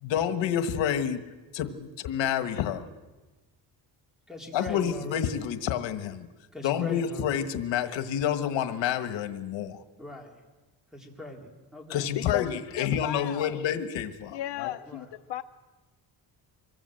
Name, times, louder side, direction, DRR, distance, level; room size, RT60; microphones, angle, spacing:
voice 1, 0.0-1.2 1.5-2.9 4.5-6.3 6.6-9.8 11.9-14.7, left 9 dB, 90° left, 1.5 m, -29 dB
voice 2, 4.3-5.2 6.5-7.3 10.0-10.3 10.9-12.1 14.9-15.0, left 1 dB, ahead, 3.7 m, -40 dB
voice 3, 12.2-13.6 14.3-15.4, left 12 dB, 70° left, 0.7 m, -35 dB
25.0 x 21.5 x 7.8 m
cardioid pair, 165°, 43 cm